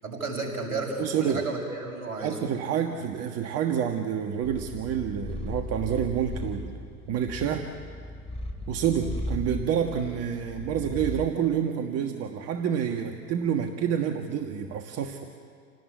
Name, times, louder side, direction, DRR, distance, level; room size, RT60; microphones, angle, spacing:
voice 1, 0.0-2.4, right 3 dB, 70° right, 1 dB, 7.0 m, -32 dB
voice 2, 1.0-1.4 2.2-6.7 7.1-7.7 8.7-15.2, right 8 dB, 30° right, 5 dB, 1.5 m, -28 dB
Purr, 4.4-11.4, left 1 dB, 15° left, 2.8 m, -37 dB
29.0 x 18.5 x 8.4 m, 2.2 s
figure-of-eight pair, 95°, 46 cm